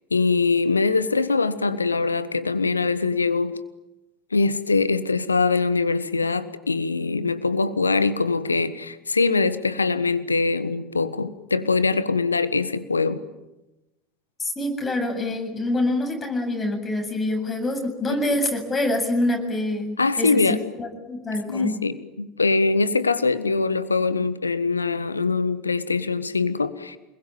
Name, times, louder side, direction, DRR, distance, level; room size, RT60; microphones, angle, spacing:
voice 1, 0.1-3.6 4.3-13.2 18.1-18.4 20.0-20.6 21.5-27.0, left 4 dB, 85° left, 14 dB, 1.4 m, -23 dB
voice 2, 14.4-21.8, left 1 dB, 20° left, 4 dB, 7.9 m, -26 dB
28.0 x 21.5 x 9.3 m, 1.0 s
figure-of-eight pair, 75°, 0 cm